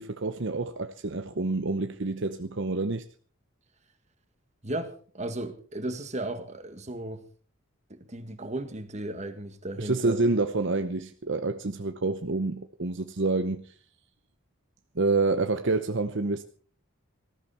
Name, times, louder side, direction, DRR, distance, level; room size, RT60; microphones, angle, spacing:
voice 1, 0.0-3.0 9.8-13.7 14.9-16.4, right 3 dB, 60° right, 0.9 m, -28 dB
voice 2, 4.6-7.2 7.9-10.2, right 1 dB, 35° right, 1.9 m, -35 dB
19.0 x 14.0 x 4.3 m
head